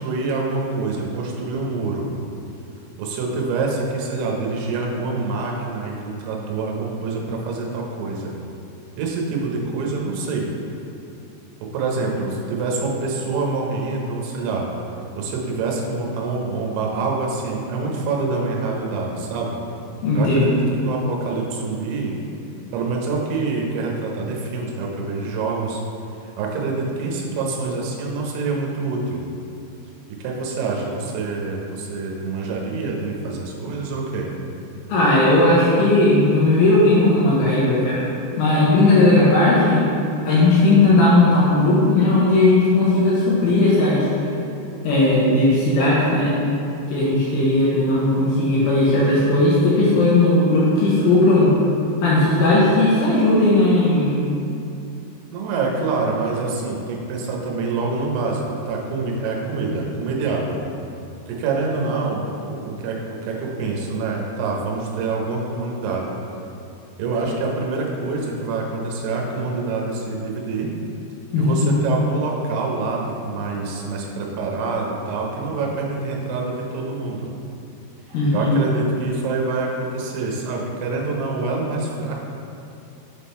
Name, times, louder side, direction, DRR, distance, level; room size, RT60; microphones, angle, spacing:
voice 1, 0.0-2.1 3.0-8.3 9.0-10.5 11.7-14.7 15.2-19.6 20.1-22.2 22.7-25.8 26.2-29.2 30.2-34.3 55.3-60.6 61.3-66.1 67.0-70.7 71.4-77.3 78.3-82.2, right 3 dB, 75° right, -1 dB, 2.6 m, -26 dB
voice 2, 20.0-20.5 34.9-38.1 38.4-39.8 40.2-44.1 44.8-46.4 46.9-51.6 52.0-54.2 71.3-71.7 78.1-78.5, left 2 dB, 75° left, -7 dB, 2.6 m, -16 dB
6.9 x 3.7 x 4.2 m, 2.6 s
omnidirectional pair, 5.1 m